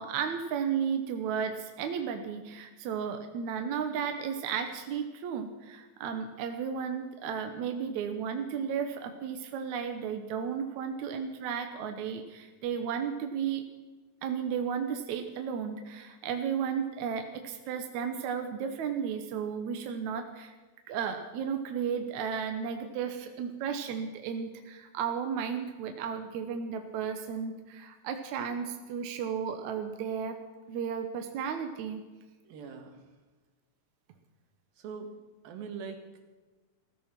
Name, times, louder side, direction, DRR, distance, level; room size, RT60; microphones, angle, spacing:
voice 1, 0.0-13.6 14.2-20.5 20.9-30.4 30.7-32.0, right 7 dB, 65° right, 5 dB, 2.1 m, -34 dB
voice 2, 32.4-33.0 34.8-35.2 35.4-36.0, right 5 dB, 90° right, 5 dB, 3.4 m, -41 dB
16.0 x 14.5 x 6.0 m, 1.3 s
omnidirectional pair, 4.1 m